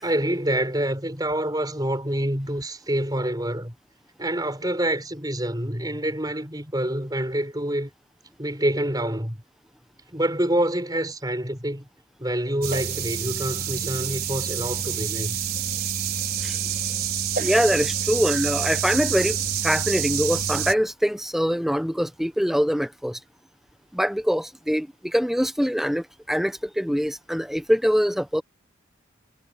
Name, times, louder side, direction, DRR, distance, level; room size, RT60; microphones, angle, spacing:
voice 1, 0.0-3.7 4.2-7.9 8.4-9.4 10.1-11.9 12.2-15.4, right 1 dB, 20° right, 6.2 m, -26 dB
sound 1, 12.6-20.7, right 8 dB, 50° right, 5.5 m, -27 dB
voice 2, 17.4-19.4 19.6-23.2 23.9-28.4, equal, ahead, 1.1 m, -23 dB
head